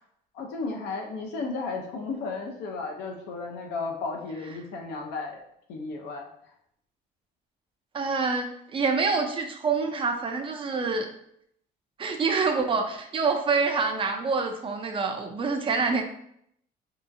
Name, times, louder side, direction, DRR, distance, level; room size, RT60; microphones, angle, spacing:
voice 1, 0.3-5.4 5.7-6.3, left 3 dB, 80° left, 1 dB, 0.6 m, -34 dB
voice 2, 7.9-11.1 12.0-16.0, right 4 dB, 30° right, 5 dB, 0.4 m, -26 dB
2.7 x 2.3 x 2.5 m, 0.72 s
cardioid pair, 110°, 17 cm